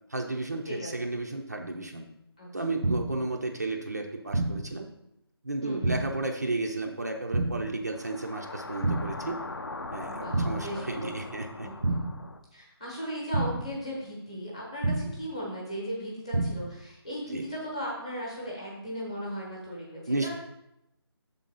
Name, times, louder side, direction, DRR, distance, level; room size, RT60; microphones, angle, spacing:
voice 1, 0.1-2.0 2.5-4.9 5.4-9.4 9.9-11.7 17.3-17.5 20.1-20.3, right 2 dB, 40° right, 2 dB, 0.6 m, -33 dB
sound 1, 2.8-3.3 4.3-4.8 5.8-6.3 7.3-7.8 8.8-9.3 10.3-10.8 11.8-12.3 13.3-13.8 14.8-15.3 16.3-16.8, right 2 dB, 80° right, 0.7 m, -29 dB
voice 2, 5.6-6.0 10.1-11.1 11.6-12.0 12.5-20.3, equal, 15° left, -4 dB, 1.0 m, -37 dB
sound 2, 7.9-12.4, left 2 dB, 60° left, 0.6 m, -40 dB
6.8 x 3.8 x 5.4 m, 0.85 s
figure-of-eight pair, 180°, 14 cm